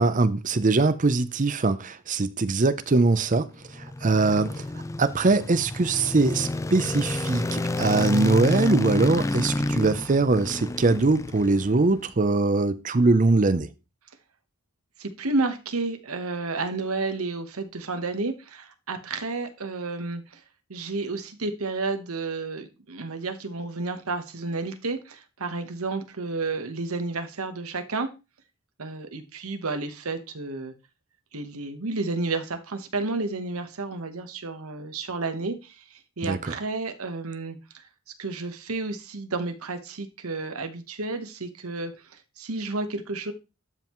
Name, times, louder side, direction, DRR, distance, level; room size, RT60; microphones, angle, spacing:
voice 1, 0.0-3.5 4.0-4.6 5.0-13.7 36.2-36.5, right 3 dB, 35° right, 0.6 m, -22 dB
sound 1, 3.5-11.9, left 2 dB, 15° left, 0.3 m, -29 dB
voice 2, 15.0-20.4 20.7-28.1 28.8-30.7 31.3-37.8 38.2-43.3, right 3 dB, 75° right, 1.2 m, -31 dB
12.0 x 5.6 x 3.1 m
head